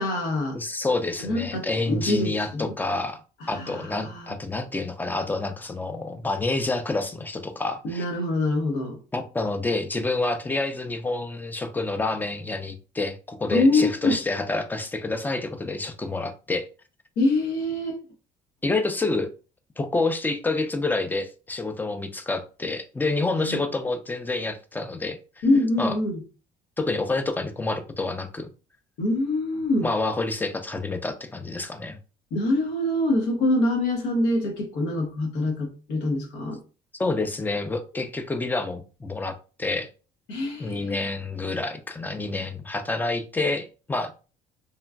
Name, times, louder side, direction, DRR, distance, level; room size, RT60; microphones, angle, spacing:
voice 1, 0.0-0.6 1.2-2.7 3.4-4.3 7.8-9.0 13.5-14.2 17.2-18.0 23.4-23.6 25.4-26.2 29.0-29.9 32.3-36.6 40.3-40.9, left 2 dB, 90° left, 0.9 m, -25 dB
voice 2, 0.5-3.2 3.5-8.0 9.1-16.6 18.6-19.3 19.8-25.4 25.8-26.0 26.8-28.5 29.8-32.0 37.0-39.9 40.6-44.1, left 3 dB, 10° left, 0.4 m, -28 dB
3.0 x 2.4 x 2.2 m
cardioid pair, 110°, 17 cm